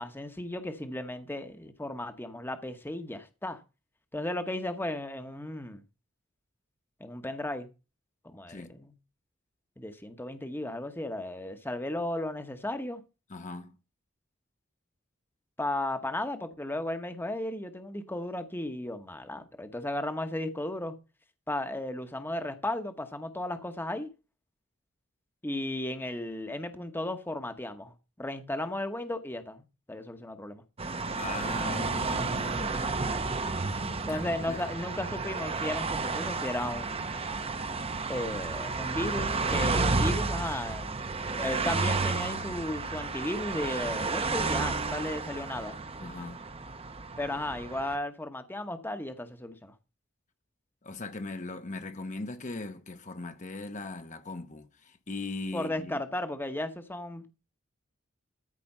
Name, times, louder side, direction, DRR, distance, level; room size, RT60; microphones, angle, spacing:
voice 1, 0.0-3.6 4.1-5.8 7.0-7.7 8.2-8.9 9.8-13.0 15.6-20.9 21.5-24.1 25.4-30.6 34.1-37.2 38.1-41.0 41.4-45.8 47.2-49.7 55.5-57.3, left 1 dB, 10° left, 1.0 m, -35 dB
voice 2, 13.3-13.7 31.2-33.0 33.7-34.6 46.0-46.4 50.8-56.0, left 3 dB, 40° left, 0.9 m, -39 dB
sound 1, 30.8-48.0, right 3 dB, 30° right, 0.8 m, -32 dB
13.5 x 4.9 x 5.5 m
head